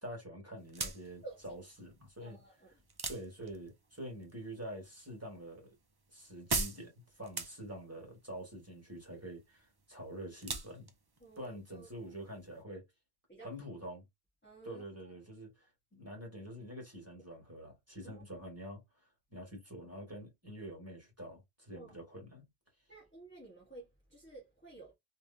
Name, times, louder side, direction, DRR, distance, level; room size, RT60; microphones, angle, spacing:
voice 1, 0.0-2.4 3.1-5.8 6.1-10.9 11.4-12.8 13.4-14.0 14.6-18.8 19.3-22.4, equal, 15° right, 2.0 m, -46 dB
sound 1, 0.6-12.6, right 3 dB, 30° right, 0.5 m, -43 dB
voice 2, 1.2-1.6 2.2-2.7 11.2-12.1 13.3-13.5 14.4-14.8 18.0-18.2 21.7-21.9 22.9-24.9, right 2 dB, 10° left, 1.2 m, -52 dB
3.4 x 2.8 x 2.6 m
omnidirectional pair, 1.1 m